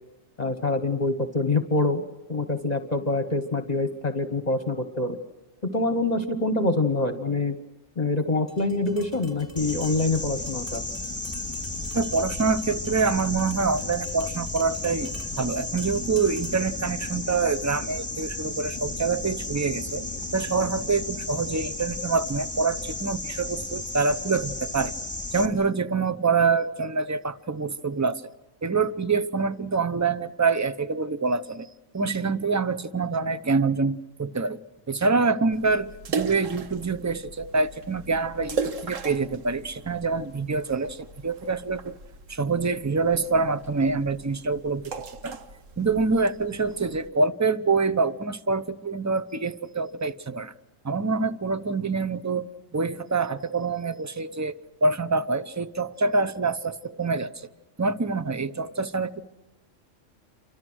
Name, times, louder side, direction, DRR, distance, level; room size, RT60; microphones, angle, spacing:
voice 1, 0.4-2.0 2.3-5.2 5.7-7.6 8.0-10.8, left 2 dB, 35° left, 7 dB, 1.3 m, -25 dB
Tap, 8.5-16.8, left 1 dB, 40° right, 5.0 m, -47 dB
sound 1, 9.6-25.5, left 2 dB, 15° left, 2.5 m, -33 dB
voice 2, 11.9-15.1 15.4-24.9 25.3-28.2 28.6-31.7 31.9-34.6 34.9-42.0 42.3-45.4 45.8-50.5 50.8-54.5 54.8-57.5 57.8-59.2, right 4 dB, 15° right, 13 dB, 0.6 m, -26 dB
sound 2, 35.5-47.1, right 4 dB, 75° right, 1.6 m, -38 dB
29.5 x 25.0 x 6.3 m, 1.0 s
omnidirectional pair, 1.3 m